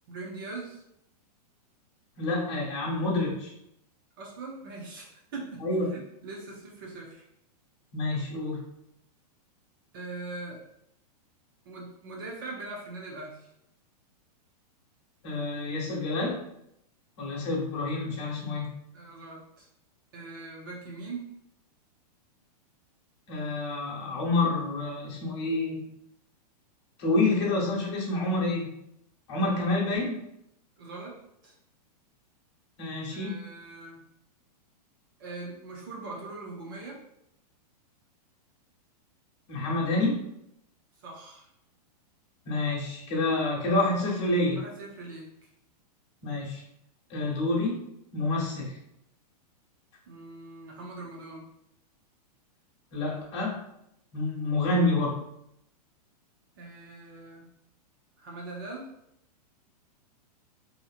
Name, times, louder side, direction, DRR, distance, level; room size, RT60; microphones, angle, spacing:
voice 1, 0.1-0.8 4.2-5.6 5.9-7.3 9.9-10.6 11.7-13.5 18.9-19.7 20.1-21.3 30.8-31.2 31.4-31.5 33.1-34.0 35.2-37.0 41.0-41.5 44.6-45.3 50.1-51.5 56.6-57.5 58.2-58.9, right 3 dB, 30° right, -2 dB, 0.4 m, -41 dB
voice 2, 2.2-3.5 5.6-5.9 7.9-8.6 15.2-16.4 17.2-18.7 23.3-25.8 27.0-28.7 29.3-30.2 32.8-33.3 39.5-40.2 42.4-44.6 46.2-46.6 47.1-47.8 48.1-48.8 52.9-53.6 54.1-55.2, left 2 dB, 45° left, -4 dB, 1.0 m, -28 dB
2.7 x 2.6 x 2.4 m, 0.78 s
supercardioid pair, 175°, 21 cm